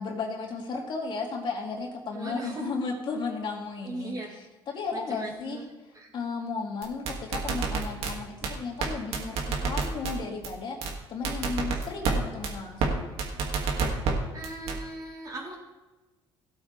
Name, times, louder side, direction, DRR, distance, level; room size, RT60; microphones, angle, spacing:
voice 1, 0.0-4.1 4.7-5.6 6.1-13.1, left 4 dB, 50° left, -1 dB, 3.0 m, -34 dB
voice 2, 2.1-2.7 3.8-4.3 4.9-5.7 5.9-6.1 14.3-15.5, right 2 dB, 35° right, -8 dB, 3.7 m, -38 dB
sound 1, 6.8-8.1 8.4-8.5 8.8-8.9 9.1-10.1 10.4-10.5 10.8-10.9 11.2-12.1 12.4-12.5 12.8-12.9 13.2-14.1 14.4-14.7, right 5 dB, 70° right, 2.3 m, -27 dB
17.5 x 8.3 x 3.5 m, 1.1 s
cardioid pair, 110°, 10 cm